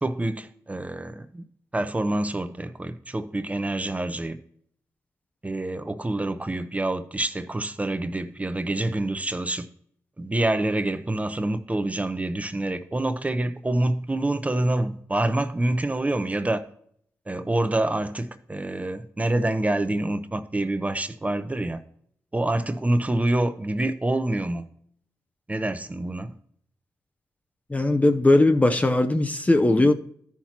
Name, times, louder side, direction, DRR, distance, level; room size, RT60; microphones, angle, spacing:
voice 1, 0.0-1.4 1.7-4.4 5.4-9.7 10.2-16.6 17.3-21.8 22.3-24.6 25.5-26.4, right 1 dB, 20° right, 0.7 m, -26 dB
voice 2, 27.7-29.9, left 2 dB, 20° left, 0.6 m, -19 dB
13.5 x 5.9 x 2.9 m
cardioid pair, 55°, 7 cm